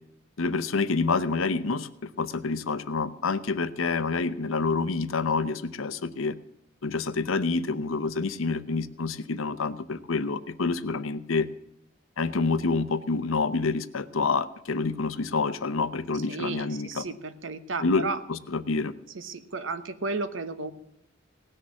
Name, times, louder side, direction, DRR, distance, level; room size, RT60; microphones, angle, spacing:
voice 1, 0.4-6.4 6.8-11.5 12.2-17.0 17.8-18.9, left 4 dB, 90° left, 13 dB, 0.8 m, -28 dB
voice 2, 16.3-18.2 19.1-20.7, right 3 dB, 70° right, 11 dB, 1.0 m, -33 dB
18.0 x 6.6 x 7.4 m, 0.80 s
head